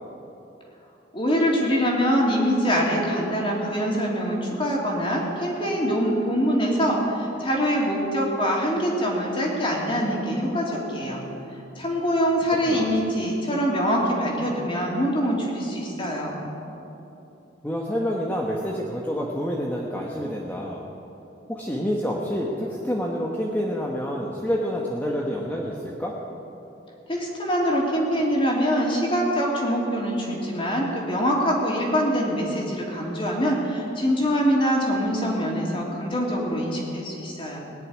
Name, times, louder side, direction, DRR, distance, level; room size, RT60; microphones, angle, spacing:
voice 1, 1.1-11.2 11.8-16.4 27.1-37.6, equal, 30° left, -2 dB, 3.0 m, -24 dB
voice 2, 12.7-13.0 17.6-20.8 21.5-26.1, equal, 10° left, -3 dB, 1.2 m, -28 dB
20.0 x 6.7 x 9.7 m, 3.0 s
head